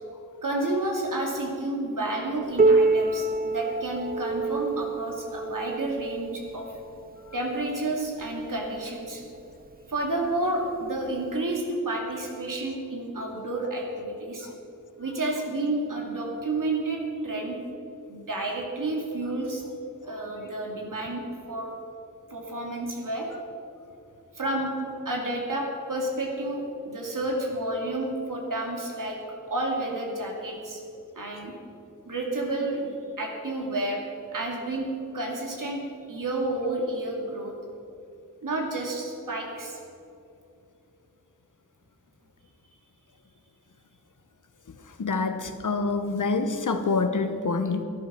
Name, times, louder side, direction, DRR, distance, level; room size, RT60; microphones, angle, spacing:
voice 1, 0.4-6.7 7.3-9.2 9.9-14.5 15.0-17.6 18.1-19.6 20.0-21.2 21.5-21.7 22.3-23.3 24.3-24.7 25.0-29.2 29.4-30.8 31.1-31.5 32.0-32.9 33.2-34.0 34.3-37.6 38.4-39.8, right 2 dB, 75° right, 0 dB, 2.5 m, -30 dB
Piano, 2.6-7.9 8.8-8.9 9.4-9.5 10.2-10.3 11.4-11.5, right 3 dB, 30° right, 0.4 m, -26 dB
voice 2, 45.0-47.8, left 4 dB, 70° left, 8 dB, 1.1 m, -26 dB
13.0 x 10.5 x 6.1 m, 2.7 s
wide cardioid pair, 85°, 32 cm